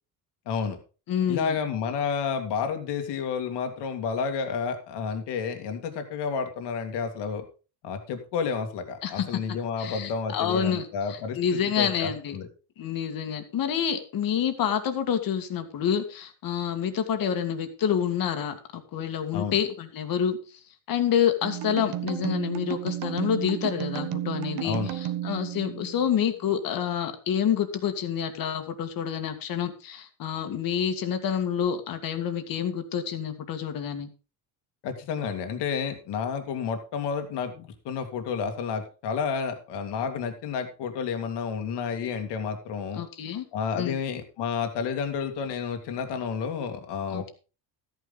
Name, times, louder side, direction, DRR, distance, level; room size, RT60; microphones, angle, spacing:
voice 1, 0.5-0.8 1.3-7.4 7.8-11.4 11.8-12.5 19.3-19.6 24.6-24.9 34.8-43.0 43.5-47.3, left 6 dB, 70° left, 6 dB, 2.4 m, -30 dB
voice 2, 1.1-1.6 9.0-9.4 9.8-12.4 12.8-20.4 20.9-34.1 43.0-43.5 43.7-44.0 47.1-47.3, left 8 dB, 55° left, 8 dB, 2.0 m, -28 dB
sound 1, 21.4-26.3, right 12 dB, 60° right, 1.1 m, -33 dB
13.5 x 9.5 x 3.9 m, 0.34 s
cardioid pair, 145°, 42 cm